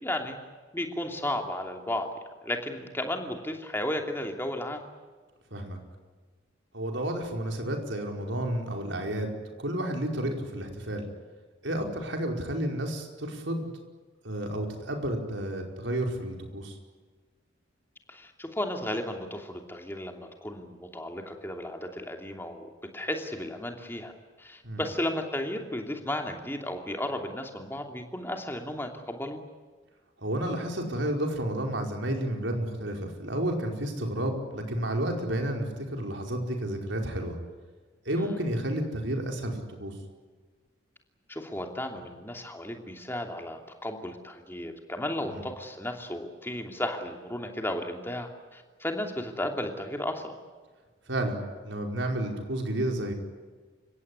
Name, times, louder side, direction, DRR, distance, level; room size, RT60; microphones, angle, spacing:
voice 1, 0.0-0.4 0.7-2.1 2.4-4.8 10.3-10.4 18.1-24.1 24.4-29.4 38.1-38.4 41.3-50.3, left 1 dB, 10° left, 3 dB, 2.8 m, -34 dB
voice 2, 6.7-11.0 11.6-13.7 14.2-16.8 24.6-24.8 30.2-37.4 38.0-39.9 45.3-45.4 51.1-53.1, right 1 dB, 75° right, 2 dB, 5.0 m, -31 dB
29.5 x 17.0 x 9.9 m, 1.4 s
head